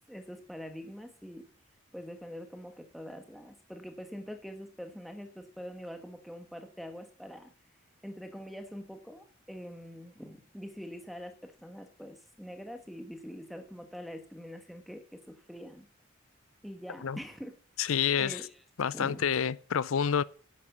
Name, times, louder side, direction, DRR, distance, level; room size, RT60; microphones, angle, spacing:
voice 1, 0.1-1.5 1.9-7.5 8.0-15.9 16.6-17.6 17.8-18.6 18.9-19.3, equal, ahead, 1.4 m, -44 dB
voice 2, 17.8-18.4 18.8-20.2, left 7 dB, 85° left, 0.5 m, -28 dB
9.9 x 9.4 x 7.2 m
head